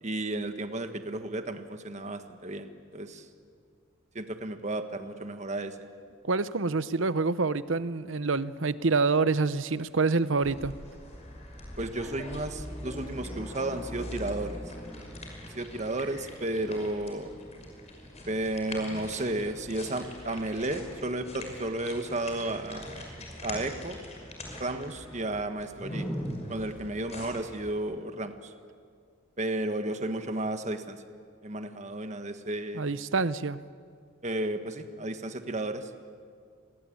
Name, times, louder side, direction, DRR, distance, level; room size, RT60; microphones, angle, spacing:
voice 1, 0.0-3.2 4.1-5.7 11.8-14.6 15.6-17.3 18.3-24.0 24.6-26.1 26.5-28.3 29.4-31.0 31.4-32.8 34.2-35.9, right 1 dB, 35° right, 8 dB, 1.5 m, -33 dB
voice 2, 6.2-10.8 32.7-33.6, right 4 dB, 70° right, 15 dB, 0.8 m, -27 dB
sound 1, 10.4-27.7, left 1 dB, 35° left, 5.6 m, -42 dB
28.5 x 22.0 x 8.8 m, 2.2 s
head